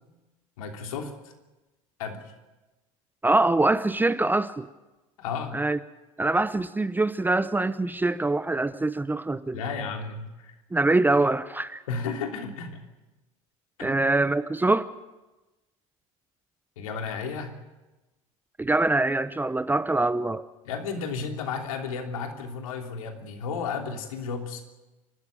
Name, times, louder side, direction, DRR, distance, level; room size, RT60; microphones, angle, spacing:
voice 1, 0.6-1.1 2.0-2.2 5.2-5.6 9.5-10.5 11.9-12.8 13.8-14.0 16.8-17.6 20.6-24.6, left 5 dB, 75° left, 4 dB, 3.2 m, -33 dB
voice 2, 3.2-4.7 5.5-5.8 6.2-9.6 10.7-11.8 13.8-14.9 18.6-20.4, right 2 dB, 10° right, 13 dB, 0.8 m, -24 dB
29.0 x 13.0 x 9.1 m, 1.1 s
hypercardioid pair, 75°, 18 cm